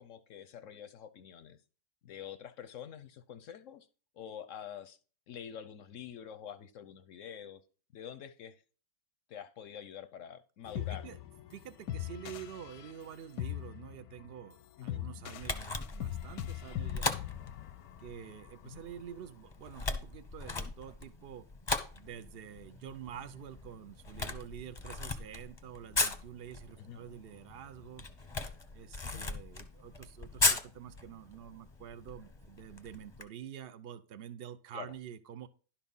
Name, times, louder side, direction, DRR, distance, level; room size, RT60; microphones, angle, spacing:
voice 1, 0.0-1.6 2.0-3.9 4.1-5.0 5.3-7.6 7.9-8.6 9.3-11.1 14.8-15.0 18.6-18.8 26.8-27.0 29.0-29.3 34.7-34.9, left 9 dB, 65° left, 12 dB, 0.8 m, -46 dB
sound 1, 10.7-18.8, left 13 dB, 85° left, 1.2 m, -41 dB
voice 2, 10.7-11.2 11.5-17.2 18.0-21.5 21.9-28.1 28.7-35.5, right 9 dB, 75° right, 11 dB, 0.5 m, -47 dB
Camera, 15.4-33.2, left 3 dB, 25° left, 0.6 m, -38 dB
11.5 x 4.3 x 5.4 m, 0.38 s
omnidirectional pair, 1.8 m